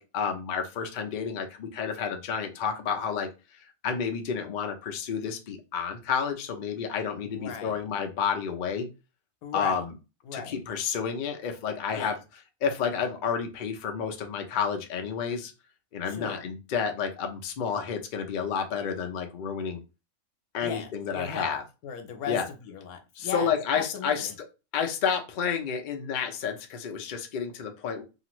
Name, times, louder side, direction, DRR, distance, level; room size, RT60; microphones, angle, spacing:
voice 1, 0.0-3.3 3.8-8.9 9.5-9.9 10.3-12.2 12.6-15.5 15.9-19.8 20.5-21.6 22.3-22.5 23.2-24.3 24.7-28.0, left 6 dB, 55° left, 4 dB, 0.5 m, -30 dB
voice 2, 7.3-7.8 9.4-9.8 10.2-10.5 11.9-12.1 16.0-16.5 20.6-21.6 21.8-24.4, left 6 dB, 80° left, 5 dB, 1.1 m, -37 dB
2.9 x 2.5 x 3.0 m, 0.29 s
omnidirectional pair, 1.5 m